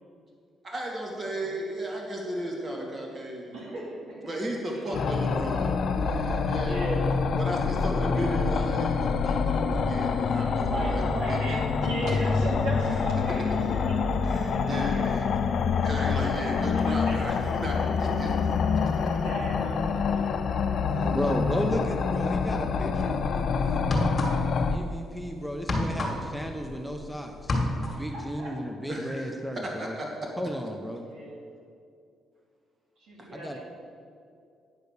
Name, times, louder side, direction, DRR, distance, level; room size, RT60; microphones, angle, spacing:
voice 1, 0.6-3.5 4.3-6.8 7.3-11.0 11.3-11.6 14.2-15.3 15.7-18.4 18.7-18.8 20.9-21.4 28.9-29.3 29.6-30.1 33.2-33.3, right 1 dB, 35° right, -1 dB, 2.1 m, -35 dB
voice 2, 3.5-4.3 4.7-4.9 6.6-7.1 10.7-15.2 16.9-17.2 18.9-20.3 27.8-28.6 31.0-31.4 33.0-33.6, right 1 dB, 80° right, -4 dB, 2.5 m, -36 dB
sound 1, 4.9-24.8, left 5 dB, 60° left, 0.6 m, -26 dB
voice 3, 21.1-23.9 24.7-27.5 27.8-29.9 30.4-31.1 33.3-33.6, equal, ahead, 3 dB, 0.8 m, -34 dB
sound 2, 23.0-23.2 23.8-24.7 24.9-27.1 27.3-28.1, left 1 dB, 35° left, 1.9 m, -28 dB
9.4 x 5.1 x 6.5 m, 2.4 s
cardioid pair, 90°, 0 cm